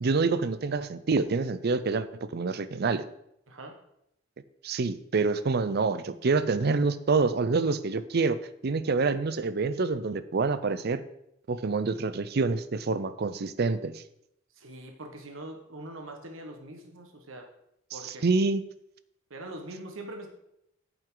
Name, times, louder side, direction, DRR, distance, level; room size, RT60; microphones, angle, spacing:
voice 1, 0.0-3.0 4.6-11.0 11.5-14.0 17.9-18.6, right 4 dB, 55° right, 14 dB, 0.5 m, -27 dB
voice 2, 14.6-17.5 17.9-18.2 19.3-20.3, right 1 dB, 90° right, 3 dB, 1.3 m, -42 dB
9.3 x 7.8 x 3.8 m, 0.78 s
head